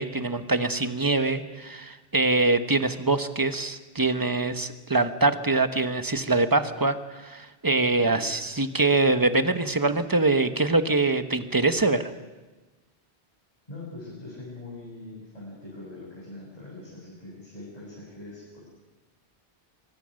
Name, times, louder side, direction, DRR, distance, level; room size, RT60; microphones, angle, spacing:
voice 1, 0.0-12.1, right 3 dB, 20° right, 10 dB, 1.1 m, -24 dB
voice 2, 13.7-18.7, left 2 dB, 35° left, -7 dB, 7.6 m, -42 dB
24.5 x 24.0 x 6.5 m, 1.2 s
omnidirectional pair, 1.1 m